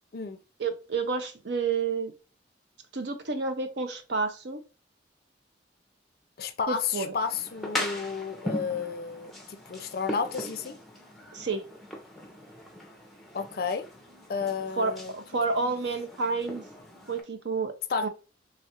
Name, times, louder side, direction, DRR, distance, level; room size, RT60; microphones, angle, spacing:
voice 1, 0.6-2.1 2.9-4.6 6.7-7.1 11.3-11.7 14.8-16.6 17.1-17.7 18.0-18.1, right 4 dB, 70° right, 0.6 m, -30 dB
voice 2, 6.4-10.8 13.3-13.9 14.3-15.1 15.6-15.7 17.9-18.1, left 5 dB, 55° left, 0.4 m, -32 dB
sound 1, 7.2-17.2, left 1 dB, ahead, 0.6 m, -40 dB
3.3 x 2.4 x 2.8 m
head